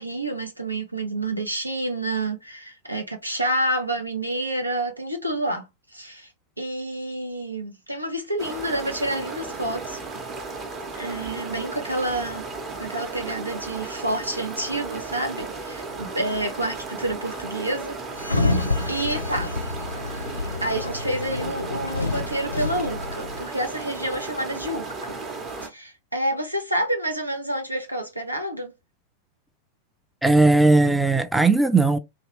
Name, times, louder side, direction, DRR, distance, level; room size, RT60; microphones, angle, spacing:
voice 1, 0.0-5.7 5.9-6.3 6.6-10.0 10.9-12.4 12.8-18.6 18.9-19.6 20.6-25.2 25.6-28.7, right 1 dB, 85° right, 0.8 m, -29 dB
sound 1, 8.4-25.7, right 3 dB, 30° right, 0.8 m, -35 dB
Sliding door, 18.2-23.4, left 3 dB, 80° left, 0.5 m, -28 dB
voice 2, 30.2-32.0, right 3 dB, 5° right, 0.4 m, -17 dB
2.8 x 2.8 x 3.0 m
figure-of-eight pair, 90°, 0 cm